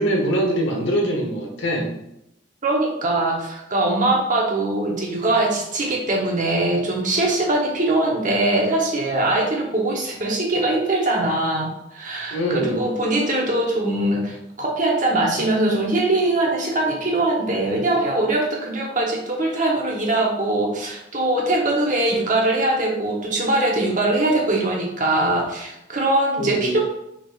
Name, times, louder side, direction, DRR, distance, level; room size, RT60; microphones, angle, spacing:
voice 1, 0.0-1.9 12.3-12.9 26.4-26.8, right 1 dB, 70° left, 1 dB, 1.0 m, -23 dB
voice 2, 2.6-26.8, right 2 dB, 40° right, -1 dB, 0.9 m, -22 dB
6.1 x 3.7 x 2.4 m, 0.82 s
head